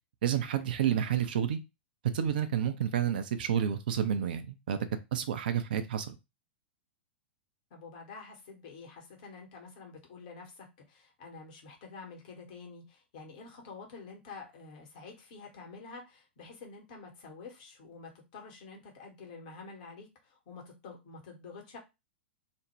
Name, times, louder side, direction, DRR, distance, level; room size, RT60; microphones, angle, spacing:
voice 1, 0.2-1.6 2.1-6.2, right 9 dB, 55° right, 0.4 m, -30 dB
voice 2, 7.7-21.8, left 4 dB, 50° left, 1.0 m, -48 dB
2.5 x 2.1 x 3.1 m
figure-of-eight pair, 100°, 6 cm